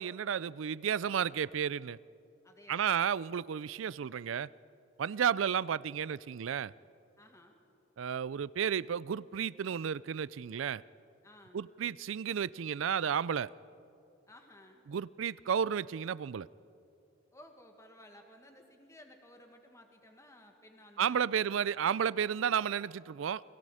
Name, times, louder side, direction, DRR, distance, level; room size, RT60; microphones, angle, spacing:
voice 1, 0.0-2.0 2.7-4.5 5.0-6.7 8.0-10.8 11.5-13.5 14.9-16.5 21.0-23.4, right 8 dB, 75° right, 0.4 m, -32 dB
voice 2, 2.4-3.1 7.2-7.6 11.2-11.7 14.3-14.8 17.3-21.4, left 1 dB, 15° left, 1.8 m, -57 dB
29.0 x 22.0 x 5.0 m
head